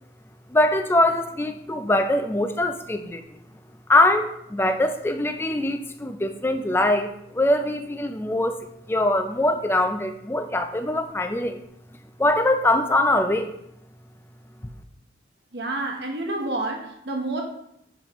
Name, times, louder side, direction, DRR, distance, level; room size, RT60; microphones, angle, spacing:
voice 1, 0.5-3.4 3.9-8.6 8.9-11.6 12.2-13.5 14.6-14.7, left 1 dB, 15° left, 7 dB, 0.4 m, -22 dB
voice 2, 15.5-17.4, right 2 dB, 70° right, 1 dB, 1.1 m, -29 dB
7.5 x 5.0 x 3.0 m, 0.78 s
head